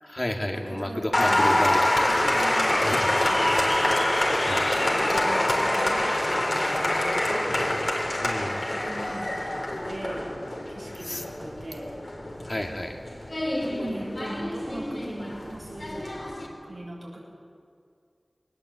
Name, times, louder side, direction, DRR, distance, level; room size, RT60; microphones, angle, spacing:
voice 1, 0.0-2.4 2.8-3.2 3.5-3.7 4.4-4.7 8.2-8.6 11.0-11.2 12.4-13.0, left 1 dB, 35° left, 2 dB, 2.4 m, -31 dB
voice 2, 0.5-1.6 2.1-3.9 4.8-7.7 8.7-10.4 10.7-11.9 13.6-17.2, right 1 dB, 75° right, -3 dB, 7.1 m, -39 dB
Applause, 1.1-16.5, left 1 dB, 55° left, 3.8 m, -26 dB
21.5 x 19.5 x 8.2 m, 2.3 s
wide cardioid pair, 50°, 0 cm